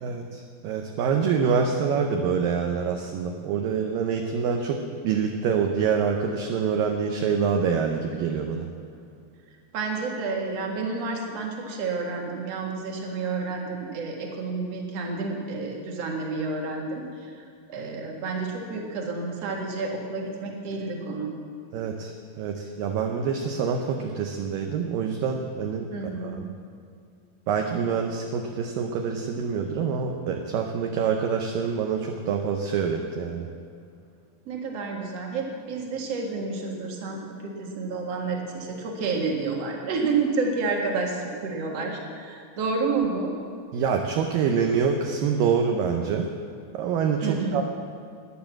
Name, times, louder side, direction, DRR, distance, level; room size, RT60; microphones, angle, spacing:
voice 1, 0.0-8.7 21.7-26.5 27.5-33.5 43.7-46.3 46.7-47.6, right 6 dB, 75° right, 3 dB, 2.2 m, -26 dB
voice 2, 9.7-21.3 25.9-26.4 34.5-43.3 47.2-47.6, right 4 dB, 50° right, 1 dB, 2.1 m, -30 dB
14.0 x 10.0 x 7.5 m, 2.3 s
omnidirectional pair, 4.8 m